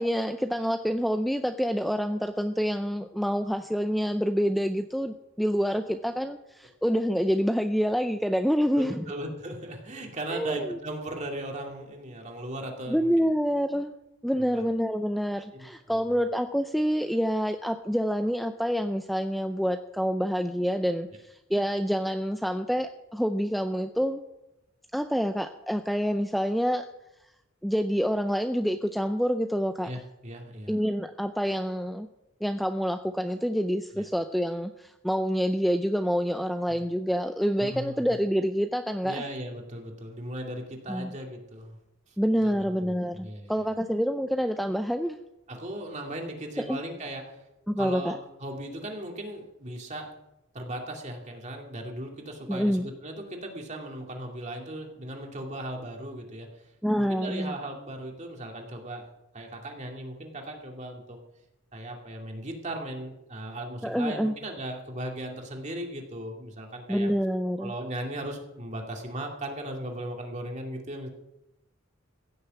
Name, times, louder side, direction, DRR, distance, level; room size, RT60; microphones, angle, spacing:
voice 1, 0.0-9.0 10.3-10.8 12.9-13.9 14.2-24.2 24.9-26.8 27.6-29.9 30.7-32.1 32.4-39.2 40.9-41.1 42.2-45.2 46.6-46.8 47.7-48.1 52.5-52.9 56.8-57.5 63.8-64.3 66.9-67.7, equal, ahead, 7 dB, 0.4 m, -27 dB
voice 2, 8.7-13.1 14.4-14.6 15.5-16.0 29.8-30.7 33.9-34.0 36.7-36.8 37.6-38.2 39.0-41.8 42.1-42.2 42.4-43.6 45.5-47.4 47.8-50.1 50.5-61.2 61.7-67.1 67.6-71.1, right 1 dB, 35° right, 2 dB, 2.4 m, -37 dB
16.0 x 6.7 x 8.2 m, 0.91 s
head